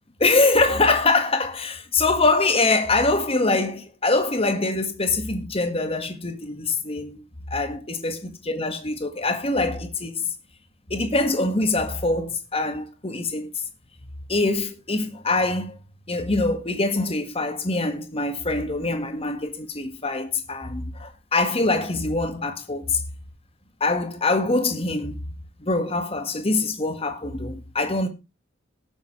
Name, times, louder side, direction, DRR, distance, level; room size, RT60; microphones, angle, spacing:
voice 1, 0.2-7.2 7.5-10.3 10.9-13.5 14.3-15.8 16.1-23.0 23.8-25.2 25.6-28.1, left 3 dB, 30° left, 1.7 m, -24 dB
18.5 x 7.2 x 3.2 m
head